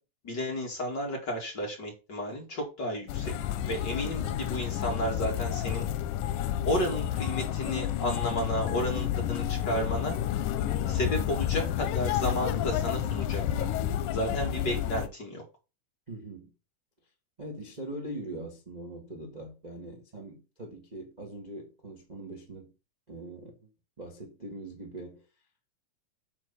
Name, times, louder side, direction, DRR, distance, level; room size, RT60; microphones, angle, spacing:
voice 1, 0.2-3.3 3.7-5.9 6.6-10.2 10.9-13.7 14.1-15.4, equal, 35° left, 2.5 m, -32 dB
sound 1, 3.1-15.1, left 11 dB, 90° left, 2.2 m, -30 dB
voice 2, 4.0-4.4 16.1-16.5 17.4-22.7 23.1-23.6 24.0-25.2, right 1 dB, 20° right, 1.1 m, -42 dB
8.8 x 3.7 x 7.0 m
omnidirectional pair, 3.5 m